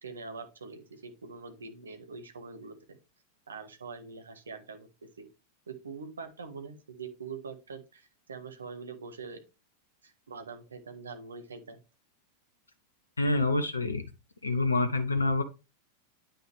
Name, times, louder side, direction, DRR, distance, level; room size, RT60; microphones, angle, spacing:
voice 1, 0.0-3.0 3.5-5.3 5.7-9.4 10.0-11.8, right 5 dB, 70° right, 7 dB, 1.5 m, -44 dB
voice 2, 13.2-14.0 14.4-15.4, left 2 dB, 75° left, 9 dB, 0.8 m, -27 dB
9.1 x 5.7 x 3.4 m, 0.28 s
figure-of-eight pair, 90°, 0 cm